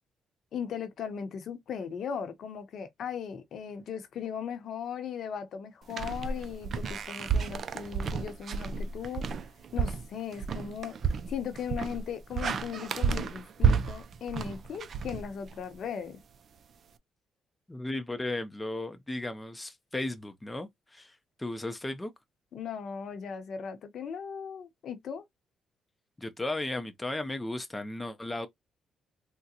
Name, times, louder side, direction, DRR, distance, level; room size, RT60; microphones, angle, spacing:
voice 1, 0.5-9.2 9.7-10.9 11.3-16.2 22.5-25.2, left 7 dB, 65° left, 0.8 m, -38 dB
sound 1, 5.9-15.8, right 6 dB, 55° right, 0.4 m, -31 dB
voice 2, 17.7-22.1 26.2-28.5, left 2 dB, 15° left, 0.5 m, -35 dB
3.7 x 2.1 x 2.8 m
cardioid pair, 90°, 0 cm